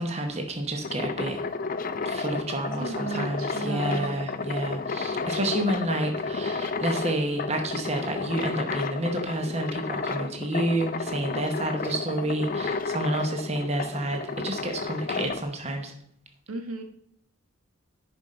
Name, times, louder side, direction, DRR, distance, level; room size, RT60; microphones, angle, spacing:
voice 1, 0.0-1.4 2.0-15.9, right 1 dB, 30° right, 4 dB, 0.9 m, -29 dB
sound 1, 0.6-15.4, left 4 dB, 40° left, 0.4 m, -32 dB
voice 2, 2.8-4.1 16.5-16.8, right 4 dB, 90° right, 5 dB, 1.2 m, -35 dB
10.0 x 5.2 x 4.3 m, 0.68 s
head